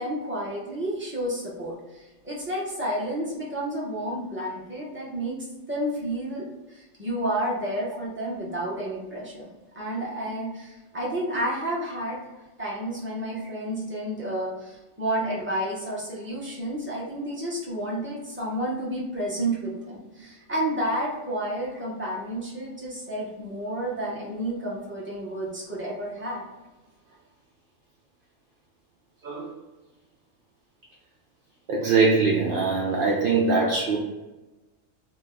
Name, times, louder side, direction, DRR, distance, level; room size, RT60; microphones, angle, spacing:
voice 1, 0.0-5.4 5.7-9.5 9.7-12.2 12.6-26.4, right 1 dB, 10° right, -6 dB, 0.8 m, -31 dB
voice 2, 31.7-34.0, right 4 dB, 70° right, -2 dB, 0.5 m, -22 dB
3.1 x 2.0 x 3.6 m, 1.1 s
omnidirectional pair, 1.4 m